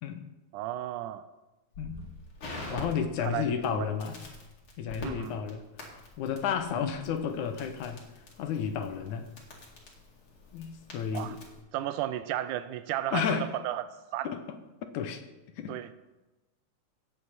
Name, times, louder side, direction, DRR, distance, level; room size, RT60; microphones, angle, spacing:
voice 1, 0.5-1.3 2.7-2.9 3.2-3.9 5.0-5.4 6.7-6.8 11.1-11.4 11.7-13.9 14.1-14.3 15.7-15.9, right 13 dB, 85° right, 13 dB, 2.1 m, -34 dB
Crackle, 1.7-11.6, left 2 dB, 45° left, 2.8 m, -46 dB
voice 2, 2.6-4.2 4.8-8.0 8.4-9.3 10.5-11.4 13.1-13.5 14.2-15.2 15.6-15.8, left 7 dB, 80° left, 8 dB, 2.3 m, -32 dB
17.0 x 7.8 x 4.2 m, 1.1 s
omnidirectional pair, 3.5 m